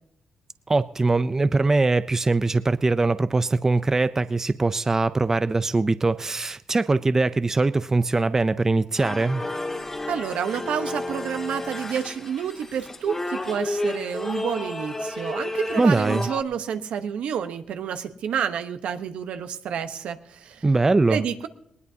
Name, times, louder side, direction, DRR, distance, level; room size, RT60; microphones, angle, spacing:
voice 1, 0.7-9.4 15.8-16.3 20.6-21.2, right 3 dB, 25° right, 13 dB, 0.5 m, -22 dB
sound 1, 9.0-16.4, left 2 dB, 20° left, 1.9 m, -32 dB
voice 2, 10.1-20.6 21.1-21.5, right 8 dB, 80° right, 8 dB, 1.1 m, -29 dB
19.5 x 19.5 x 2.8 m, 0.74 s
cardioid pair, 90°, 2 cm